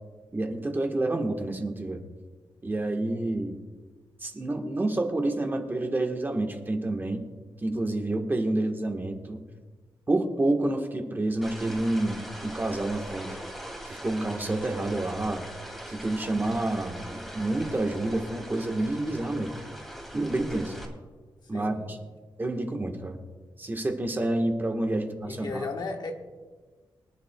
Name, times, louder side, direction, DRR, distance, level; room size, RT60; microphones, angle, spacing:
voice 1, 0.3-2.0 2.6-3.6 4.2-7.2 7.6-9.4 10.1-13.3 13.9-15.4 15.9-19.5 20.1-20.8 21.5-22.0 22.4-23.2 23.6-25.7, right 2 dB, 25° right, 1.2 m, -28 dB
sound 1, 11.4-20.8, equal, ahead, 2.3 m, -41 dB
voice 2, 21.5-22.0 25.2-26.1, left 3 dB, 55° left, 1.3 m, -35 dB
24.0 x 10.5 x 2.2 m
wide cardioid pair, 150°, 9 cm